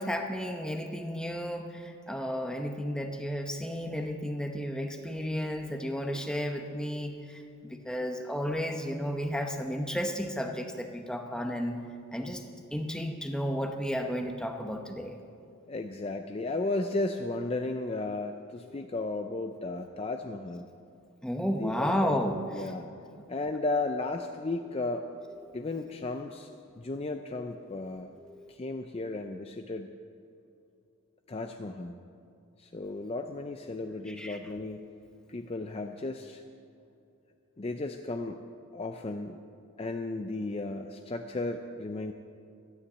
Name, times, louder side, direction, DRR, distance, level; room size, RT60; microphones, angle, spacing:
voice 1, 0.0-11.8 12.1-12.4 12.7-15.2 18.6-18.9 21.2-22.7 25.4-25.5 27.8-27.9 28.2-28.5 34.1-34.4, equal, 5° left, 4 dB, 0.8 m, -33 dB
voice 2, 15.7-20.7 21.6-22.2 22.5-22.9 23.3-25.0 25.5-26.5 26.8-28.1 28.5-29.9 31.3-32.0 32.6-34.8 35.3-36.4 37.6-38.4 38.7-39.4 39.8-42.1, left 2 dB, 25° left, 5 dB, 0.4 m, -34 dB
13.0 x 9.9 x 7.9 m, 2.6 s
head